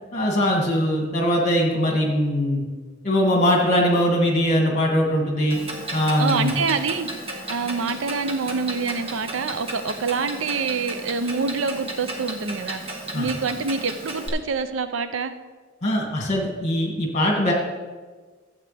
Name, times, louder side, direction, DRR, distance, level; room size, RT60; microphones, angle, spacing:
voice 1, 0.1-2.6 3.0-5.6 5.9-6.5 13.1-13.3 15.8-17.5, equal, 40° left, -1 dB, 2.2 m, -21 dB
Clock, 5.5-14.3, right 1 dB, 30° right, 1.4 m, -34 dB
voice 2, 6.2-7.1 7.5-15.3, right 4 dB, 80° right, 11 dB, 0.6 m, -26 dB
12.5 x 8.1 x 3.4 m, 1.4 s
head